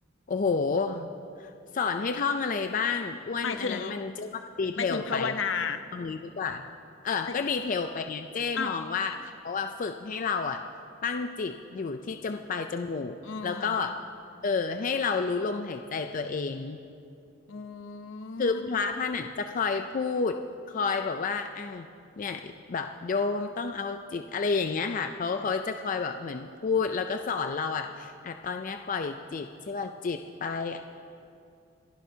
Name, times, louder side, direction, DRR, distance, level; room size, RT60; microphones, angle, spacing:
voice 1, 0.3-1.1 1.4-5.3 5.9-6.7 7.0-10.6 11.0-13.2 13.4-14.0 14.4-16.8 18.4-20.4 20.7-21.9 22.2-30.8, left 5 dB, 45° left, 6 dB, 0.4 m, -30 dB
voice 2, 3.4-3.9 4.8-5.8 8.6-8.7 13.2-13.9 17.5-18.8, left 5 dB, 75° left, 8 dB, 0.7 m, -33 dB
29.5 x 11.0 x 2.8 m, 2.5 s
head